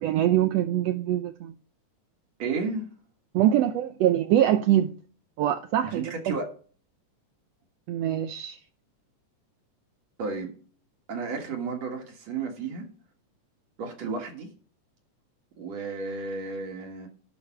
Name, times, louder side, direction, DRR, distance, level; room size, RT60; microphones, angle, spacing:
voice 1, 0.0-1.5 3.3-5.0 5.4-6.3 7.9-8.6, right 12 dB, 80° right, 1.5 m, -24 dB
voice 2, 2.4-2.9 5.9-6.5 10.2-10.6 11.1-12.9 13.8-14.5 15.6-17.1, right 4 dB, 60° right, 2.8 m, -32 dB
11.5 x 5.2 x 5.9 m
omnidirectional pair, 3.6 m